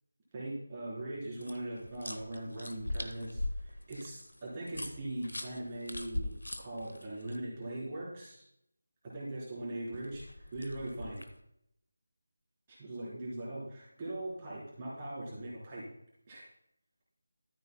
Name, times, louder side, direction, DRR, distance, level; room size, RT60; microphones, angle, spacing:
voice 1, 0.3-6.3 6.6-8.4 9.1-11.2 12.7-15.8 16.3-16.4, right 1 dB, 20° right, -7 dB, 3.8 m, -40 dB
sound 1, 1.4-7.4 9.9-11.4, left 1 dB, 70° left, 0.9 m, -41 dB
13.0 x 9.1 x 2.2 m, 0.75 s
figure-of-eight pair, 160°, 0 cm